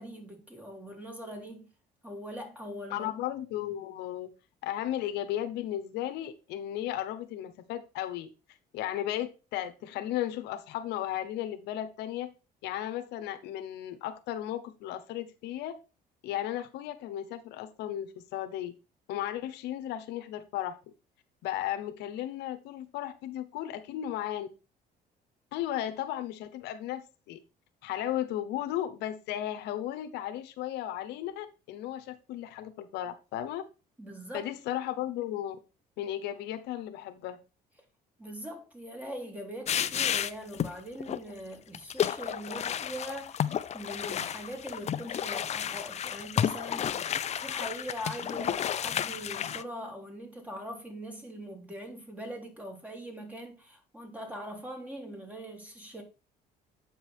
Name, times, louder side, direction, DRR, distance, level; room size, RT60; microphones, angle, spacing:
voice 1, 0.0-1.7 2.0-3.1 34.0-34.5 38.2-47.0 47.4-56.0, equal, 10° right, 2.7 m, -42 dB
voice 2, 2.9-4.3 4.6-8.3 8.7-12.3 12.6-15.8 16.2-18.7 19.1-20.8 21.4-24.5 25.5-27.4 27.8-33.6 34.3-35.5 36.0-37.4, left 12 dB, 85° left, 1.0 m, -35 dB
sound 1, 39.7-40.7 41.0-41.2 41.7-49.6, left 9 dB, 40° left, 0.6 m, -32 dB
8.5 x 5.5 x 4.4 m
cardioid pair, 110°, 17 cm